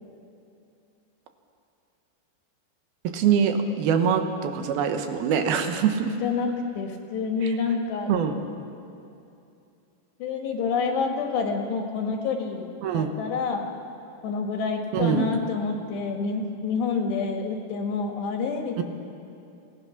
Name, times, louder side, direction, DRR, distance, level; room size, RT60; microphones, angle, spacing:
voice 1, 3.0-6.2 7.4-7.5 8.1-8.4 12.8-13.2 14.9-15.3 18.8-18.9, right 7 dB, 70° right, 7 dB, 2.8 m, -24 dB
voice 2, 6.8-8.1 10.2-12.6 12.9-13.7 14.2-18.8, left 4 dB, 75° left, 3 dB, 4.0 m, -28 dB
27.0 x 18.0 x 5.9 m, 2.6 s
omnidirectional pair, 4.9 m